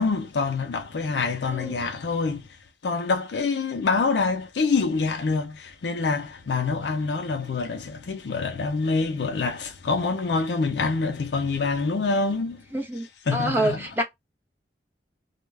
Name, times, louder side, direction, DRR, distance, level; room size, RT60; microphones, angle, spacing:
voice 1, 0.0-2.5 2.8-12.6 13.3-13.9, left 4 dB, 75° left, 0.5 m, -26 dB
voice 2, 1.5-1.9 12.7-13.1 13.3-14.0, right 1 dB, 10° right, 0.6 m, -26 dB
2.2 x 2.2 x 3.2 m
head